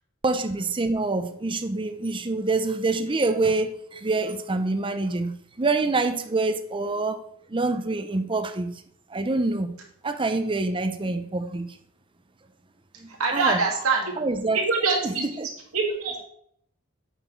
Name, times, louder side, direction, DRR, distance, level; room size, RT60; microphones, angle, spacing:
voice 1, 0.2-7.2 7.5-8.7 9.1-9.7 10.0-11.8 13.0-13.6 14.2-14.6 15.0-15.5, right 3 dB, 25° right, 9 dB, 0.6 m, -26 dB
voice 2, 13.2-14.1 14.5-15.2 15.7-16.3, right 4 dB, 85° right, 0 dB, 2.2 m, -24 dB
8.0 x 6.0 x 4.5 m, 0.69 s
head